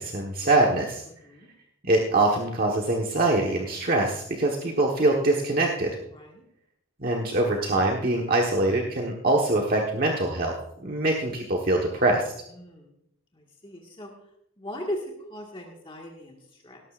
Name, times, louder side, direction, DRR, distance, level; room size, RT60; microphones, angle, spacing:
voice 1, 0.0-1.0 1.8-6.0 7.0-10.6 10.8-12.2, right 2 dB, 45° right, 0 dB, 1.3 m, -23 dB
voice 2, 6.1-6.4 10.9-11.0 12.5-12.9 13.3-14.1 14.6-15.0 15.3-16.8, left 1 dB, 25° left, 0 dB, 1.7 m, -38 dB
18.0 x 13.0 x 2.5 m, 0.74 s
head